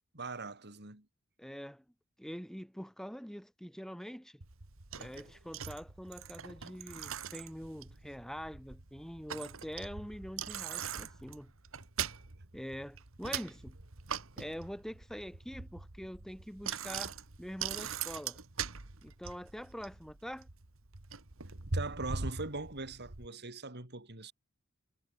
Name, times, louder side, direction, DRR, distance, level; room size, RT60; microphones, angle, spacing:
voice 1, 0.1-1.1 21.7-24.3, right 3 dB, 50° right, 4.2 m, -41 dB
voice 2, 1.4-1.8 2.2-4.4 5.0-11.5 12.5-13.8 14.4-18.4 19.0-20.5, equal, ahead, 4.5 m, -44 dB
Bicycle, 4.4-23.3, right 6 dB, 65° right, 1.9 m, -42 dB
head